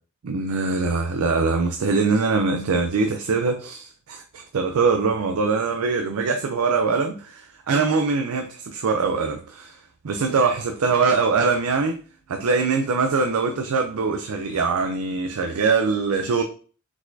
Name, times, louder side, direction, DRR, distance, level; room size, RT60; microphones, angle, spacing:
voice 1, 0.2-12.0 12.3-16.4, right 4 dB, 75° right, 0.5 m, -23 dB
4.7 x 4.0 x 2.6 m
head